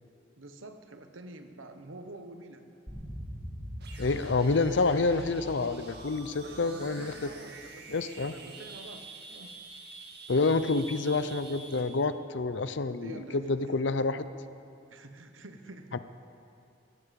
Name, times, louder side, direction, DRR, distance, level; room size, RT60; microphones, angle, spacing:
voice 1, 0.4-2.7 6.4-8.0 8.3-9.6 13.0-13.9 14.9-15.9, right 2 dB, 90° right, 7 dB, 1.2 m, -47 dB
sound 1, 2.9-8.2, equal, 15° right, 3.4 m, -44 dB
sound 2, 3.8-12.1, right 3 dB, 55° right, 1.9 m, -47 dB
voice 2, 4.0-7.1 7.9-8.3 10.3-14.3 15.9-16.0, left 3 dB, 65° left, 12 dB, 0.7 m, -28 dB
18.5 x 15.0 x 5.3 m, 2.6 s
head